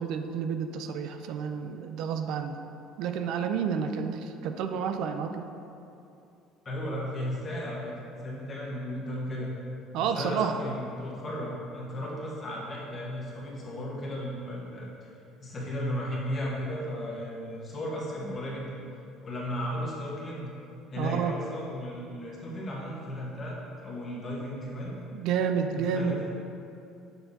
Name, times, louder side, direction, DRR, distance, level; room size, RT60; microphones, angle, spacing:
voice 1, 0.0-2.6 3.0-5.5 9.9-10.5 21.0-21.4 25.1-26.2, right 7 dB, 65° right, 7 dB, 0.3 m, -30 dB
voice 2, 6.6-9.5 10.0-15.1 15.4-20.5 20.9-23.6 23.8-24.9 25.7-26.2, equal, 30° left, -4 dB, 1.2 m, -35 dB
6.9 x 5.6 x 2.7 m, 2.7 s
cardioid pair, 150°, 0 cm